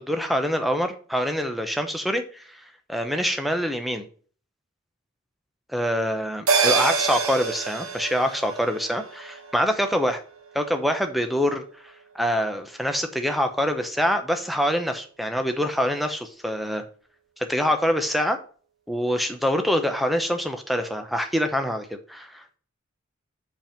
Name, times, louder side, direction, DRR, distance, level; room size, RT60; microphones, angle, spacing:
voice 1, 0.0-2.6 2.9-4.1 5.7-10.2 10.5-11.6 12.1-16.8 17.4-18.4 18.9-22.6, equal, ahead, 6 dB, 0.7 m, -25 dB
sound 1, 6.5-11.2 11.5-11.6, right 5 dB, 80° right, 1.3 m, -27 dB
5.3 x 5.2 x 5.8 m, 0.43 s
head